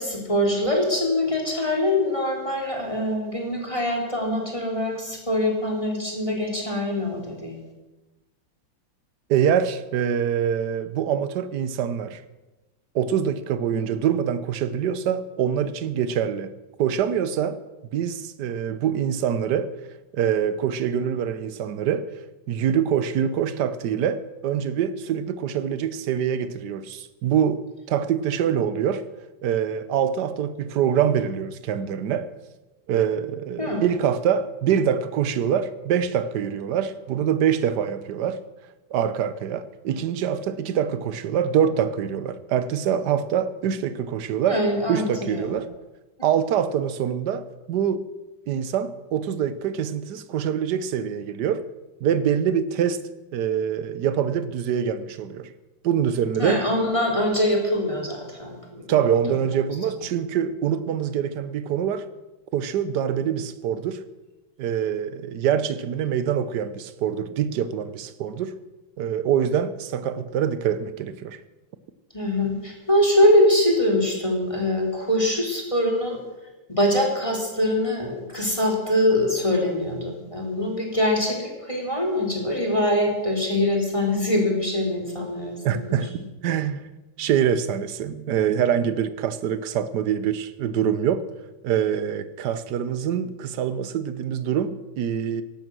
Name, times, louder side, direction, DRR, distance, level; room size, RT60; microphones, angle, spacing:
voice 1, 0.0-7.6 33.6-33.9 44.5-45.5 56.4-59.0 59.2-59.4 72.1-76.2 76.7-86.1, left 1 dB, 15° left, 3.1 m, -23 dB
voice 2, 9.3-12.2 12.9-16.5 16.8-17.6 17.9-19.7 20.1-22.1 22.5-27.6 27.9-29.0 29.4-32.3 32.9-38.4 38.9-44.6 44.9-45.7 46.2-48.0 48.5-51.6 52.0-53.0 53.3-55.5 55.8-56.6 58.9-62.1 62.5-64.0 64.6-68.6 69.0-71.4 85.6-86.9 87.2-91.2 91.6-95.4, right 8 dB, 60° right, 1.4 m, -24 dB
16.0 x 12.0 x 6.2 m
omnidirectional pair, 2.2 m